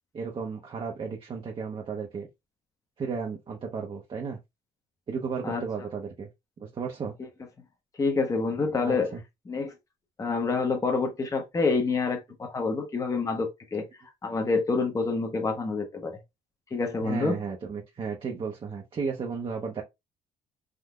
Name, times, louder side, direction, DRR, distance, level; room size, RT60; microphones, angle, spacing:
voice 1, 0.1-2.3 3.0-4.4 5.1-6.3 6.6-7.1 8.8-9.2 17.0-19.8, right 5 dB, 30° right, 0.6 m, -34 dB
voice 2, 8.0-9.1 9.5-9.7 10.2-13.8 14.2-16.1 16.7-17.4, left 4 dB, 20° left, 0.7 m, -27 dB
3.5 x 2.7 x 2.3 m
cardioid pair, 110°, 17 cm